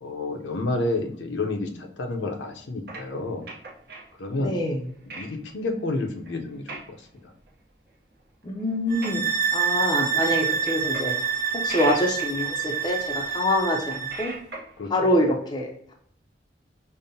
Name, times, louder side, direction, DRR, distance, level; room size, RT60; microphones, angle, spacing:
voice 1, 0.0-3.4 4.2-4.5 5.1-7.0 14.8-14.9, left 2 dB, 70° left, 3 dB, 0.6 m, -30 dB
sound 1, 2.9-4.1 4.7-4.8 5.1-5.3 5.7-5.9 6.3-6.4 6.6-6.9 7.3-7.5 8.1-8.2 8.6-9.7 10.0-10.4 10.7-11.2 11.5-13.1 13.7-14.8, right 3 dB, 55° right, 0.8 m, -40 dB
voice 2, 4.4-4.8 8.4-9.2 9.5-11.1 11.5-14.3 14.9-15.9, left 1 dB, 20° left, 0 dB, 0.5 m, -25 dB
sound 2, 8.9-14.3, right 7 dB, 20° right, 1.0 m, -27 dB
5.2 x 2.1 x 2.7 m, 0.66 s
head